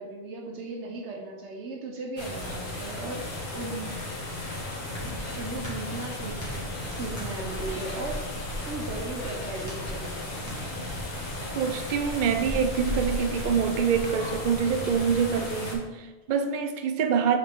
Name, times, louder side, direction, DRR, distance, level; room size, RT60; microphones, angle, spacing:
voice 1, 0.0-3.2 3.5-4.0 5.3-8.2 8.6-10.6, right 3 dB, 85° right, 1.3 m, -37 dB
sound 1, 2.2-15.8, left 1 dB, 50° left, 1.3 m, -34 dB
sound 2, 4.8-11.6, equal, 15° left, 1.7 m, -44 dB
voice 2, 11.5-17.4, right 7 dB, 55° right, 0.6 m, -26 dB
5.7 x 4.9 x 3.6 m
omnidirectional pair, 1.1 m